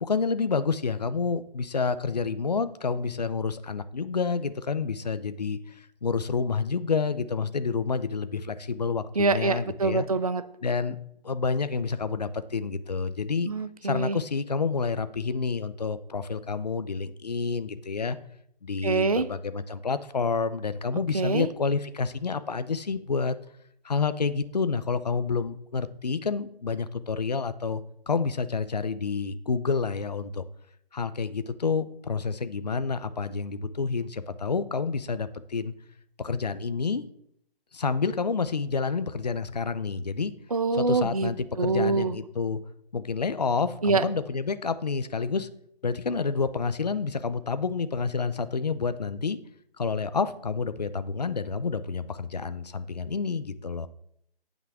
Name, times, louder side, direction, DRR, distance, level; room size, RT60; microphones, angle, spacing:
voice 1, 0.0-10.1 10.6-11.0 11.2-13.5 13.8-18.2 18.6-23.4 23.8-30.4 30.9-35.7 36.2-37.0 37.7-40.3 40.7-42.6 42.9-45.5 45.8-49.4 49.8-53.9, left 5 dB, 45° left, 13 dB, 0.6 m, -29 dB
voice 2, 9.2-10.4 13.5-14.2 18.8-19.3 21.1-21.5 40.5-41.3 41.6-42.2 43.8-44.0, right 4 dB, 40° right, 14 dB, 0.4 m, -25 dB
17.5 x 6.0 x 3.5 m, 0.72 s
hypercardioid pair, 175°, 30 cm